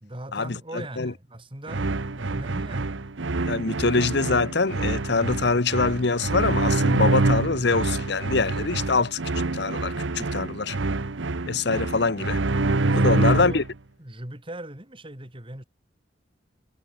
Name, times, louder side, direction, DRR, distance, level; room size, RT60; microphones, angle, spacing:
voice 1, 0.0-3.0 12.8-13.6 14.0-15.6, right 1 dB, 30° right, 3.0 m, -39 dB
sound 1, 1.7-13.7, right 2 dB, 80° right, 1.0 m, -26 dB
voice 2, 3.5-9.2 9.5-10.8 11.5-12.4 12.9-13.6, left 3 dB, 60° left, 1.0 m, -24 dB
head